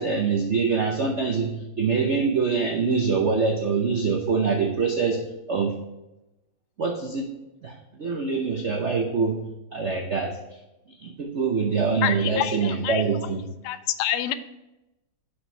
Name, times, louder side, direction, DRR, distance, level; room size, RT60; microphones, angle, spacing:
voice 1, 0.0-5.2 5.5-5.7 6.8-7.2 7.6-9.4 9.7-10.4 11.0-13.4, right 5 dB, 80° right, 1 dB, 0.6 m, -24 dB
voice 2, 12.0-13.3 13.7-14.3, left 12 dB, 85° left, 12 dB, 1.5 m, -27 dB
6.0 x 5.0 x 5.5 m, 0.96 s
omnidirectional pair, 2.3 m